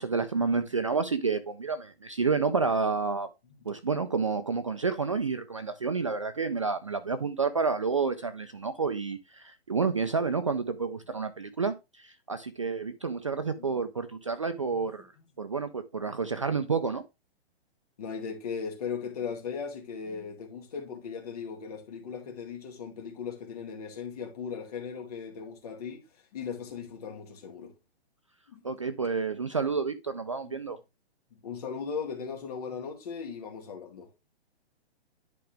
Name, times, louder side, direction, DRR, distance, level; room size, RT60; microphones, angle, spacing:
voice 1, 0.0-3.3 3.7-15.1 15.4-17.0 28.6-30.8, right 4 dB, 30° right, 0.4 m, -29 dB
voice 2, 18.0-26.1 26.3-27.7 28.5-28.7 30.4-30.6 31.3-34.1, left 6 dB, 35° left, 2.4 m, -38 dB
10.5 x 4.9 x 3.3 m
hypercardioid pair, 175°, 32 cm